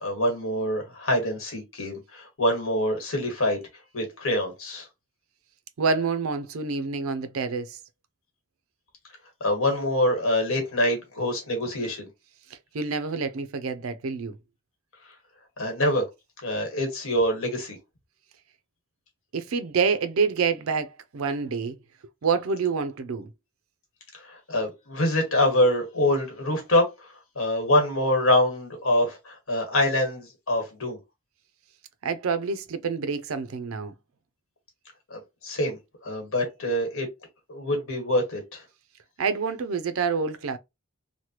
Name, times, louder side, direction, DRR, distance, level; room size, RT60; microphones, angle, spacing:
voice 1, 0.0-3.6 3.9-4.9 9.4-12.1 15.6-16.0 16.4-17.8 24.2-26.9 27.3-31.0 35.1-37.1 37.5-38.6, left 1 dB, 80° left, 1.4 m, -25 dB
voice 2, 5.8-7.8 12.7-14.3 19.3-21.8 22.2-23.3 32.0-33.9 39.2-40.6, right 5 dB, 85° right, 0.5 m, -27 dB
3.2 x 2.1 x 2.9 m
head